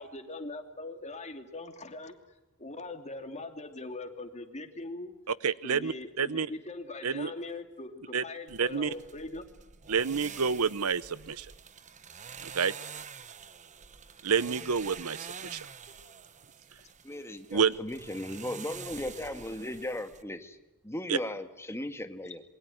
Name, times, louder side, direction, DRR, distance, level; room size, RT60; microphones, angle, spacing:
voice 1, 0.0-2.2 2.6-5.1 5.6-9.5, left 2 dB, 30° left, 6 dB, 2.8 m, -41 dB
voice 2, 5.4-6.5 7.0-7.3 8.1-8.2 8.6-8.9 9.9-11.5 12.4-12.7 14.2-15.7 17.5-17.8 21.1-21.2, right 6 dB, 75° right, 17 dB, 0.9 m, -28 dB
sound 1, 8.5-20.2, right 6 dB, 35° right, 1.1 m, -47 dB
voice 3, 17.0-20.6 20.8-22.4, left 1 dB, 10° left, 8 dB, 1.8 m, -37 dB
27.0 x 22.5 x 9.3 m, 0.99 s
head